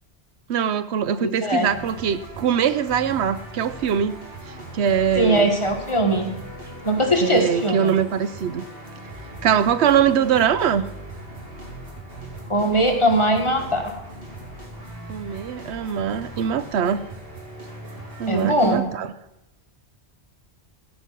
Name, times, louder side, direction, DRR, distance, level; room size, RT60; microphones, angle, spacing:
voice 1, 0.5-4.1 4.5-5.5 7.2-8.7 9.4-10.9 15.1-17.0 18.2-19.1, right 8 dB, 75° right, 13 dB, 0.9 m, -22 dB
voice 2, 1.2-1.7 5.1-6.3 6.8-7.9 12.5-13.9 18.3-18.8, right 1 dB, 25° left, 3 dB, 1.5 m, -20 dB
sound 1, 1.6-18.8, right 1 dB, 60° right, 2.6 m, -39 dB
14.5 x 5.4 x 5.9 m, 0.89 s
omnidirectional pair, 1.1 m